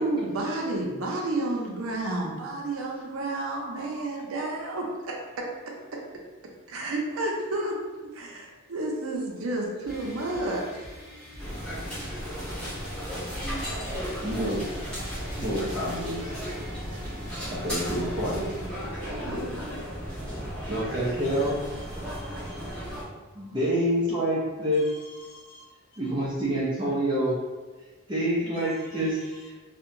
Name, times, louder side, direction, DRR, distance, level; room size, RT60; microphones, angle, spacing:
voice 1, 0.0-4.9 6.7-7.7 8.1-10.8, right 2 dB, 80° right, -1 dB, 0.5 m, -30 dB
voice 2, 3.3-4.1 18.1-20.1 21.2-22.9 24.7-25.7 25.9-26.0 28.5-29.5, equal, 70° left, -2 dB, 0.6 m, -45 dB
sound 1, 9.8-18.7, left 1 dB, 45° left, 1.0 m, -45 dB
sound 2, 11.4-23.0, equal, 5° left, 0.9 m, -35 dB
voice 3, 14.0-14.7 15.3-16.3 17.5-18.5 19.2-19.4 20.7-21.6 23.3-24.8 26.0-27.4 28.1-29.5, equal, 20° right, -6 dB, 0.4 m, -28 dB
2.7 x 2.1 x 2.5 m, 1.3 s
head